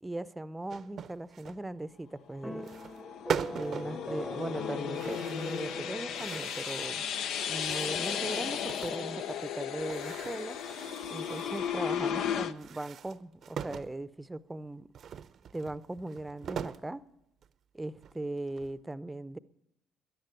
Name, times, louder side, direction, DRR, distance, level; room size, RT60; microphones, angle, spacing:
voice 1, 0.0-2.7 3.5-7.0 7.5-10.6 11.1-14.9 15.5-17.0 17.7-19.4, right 2 dB, 15° right, 0.7 m, -39 dB
sound 1, 0.7-1.6 2.6-3.0 3.3-4.0 4.9-5.8 6.1-7.0 7.5-9.1 9.8-11.8 12.5-13.9 14.9-16.9 17.4-17.5 18.0-18.8, right 8 dB, 60° right, 0.7 m, -41 dB
sound 2, 2.4-12.5, left 8 dB, 75° left, 0.7 m, -35 dB
sound 3, 2.4-6.9, equal, 10° left, 0.9 m, -43 dB
14.5 x 10.5 x 9.1 m
supercardioid pair, 80°, 0 cm